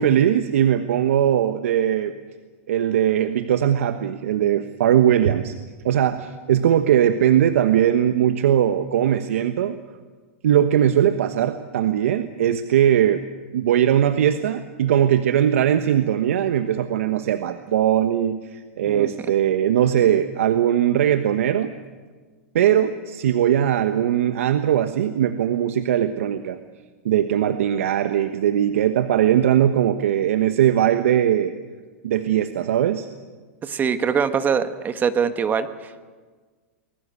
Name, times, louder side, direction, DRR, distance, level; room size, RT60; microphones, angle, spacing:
voice 1, 0.0-2.1 2.7-5.5 5.8-9.7 10.4-13.2 13.5-21.7 22.5-26.6 27.0-31.5 32.0-33.1, right 10 dB, 75° right, 9 dB, 1.2 m, -20 dB
voice 2, 33.6-35.9, right 6 dB, 25° right, 10 dB, 1.5 m, -23 dB
24.0 x 21.0 x 8.3 m, 1.5 s
hypercardioid pair, 115°, 7 cm